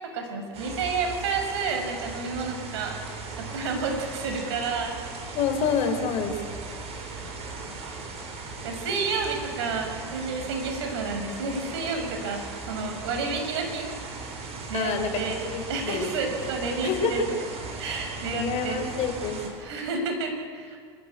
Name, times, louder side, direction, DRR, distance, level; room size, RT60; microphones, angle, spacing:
voice 1, 0.0-5.0 8.6-13.9 14.7-15.4 15.7-17.2 17.8-18.9 19.6-20.8, right 4 dB, 70° right, 4 dB, 6.6 m, -30 dB
sound 1, 0.5-19.5, right 4 dB, 45° right, 7.4 m, -38 dB
voice 2, 5.3-6.3 12.8-12.9 14.7-15.1 15.4-16.1 16.8-17.3 18.3-19.4, left 6 dB, 50° left, 6 dB, 4.5 m, -27 dB
26.5 x 15.0 x 9.7 m, 2.1 s
hypercardioid pair, 85°, 15 cm